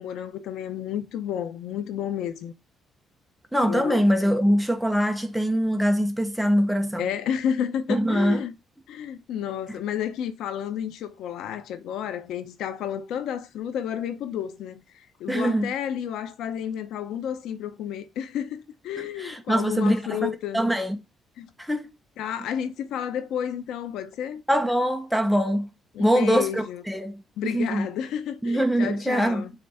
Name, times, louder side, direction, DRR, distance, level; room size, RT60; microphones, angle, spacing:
voice 1, 0.0-2.5 3.6-4.0 7.0-8.5 8.9-20.7 21.4-21.5 22.2-24.4 25.9-26.8 27.4-29.5, left 9 dB, 90° left, 0.8 m, -31 dB
voice 2, 3.5-7.1 7.9-8.4 9.7-9.8 15.3-15.7 19.2-20.3 20.5-21.0 21.6-21.9 24.5-25.7 26.0-26.5 26.9-27.9 28.4-29.5, equal, ahead, 1.0 m, -23 dB
5.9 x 3.4 x 5.4 m
cardioid pair, 140°, 0 cm